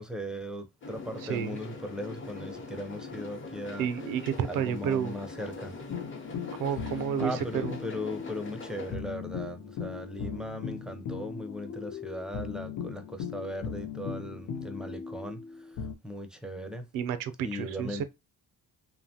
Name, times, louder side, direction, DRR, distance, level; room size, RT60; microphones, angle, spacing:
voice 1, 0.0-3.9 4.5-5.7 7.2-15.4 16.0-16.8 17.4-18.0, equal, ahead, 0.5 m, -38 dB
sound 1, 0.8-8.9, left 3 dB, 35° left, 0.9 m, -42 dB
voice 2, 1.2-1.6 3.8-5.1 6.6-7.8 16.9-18.0, right 8 dB, 80° right, 0.5 m, -31 dB
sound 2, 5.9-15.9, left 6 dB, 70° left, 0.6 m, -38 dB
2.9 x 2.1 x 2.7 m
cardioid pair, 100°, 33 cm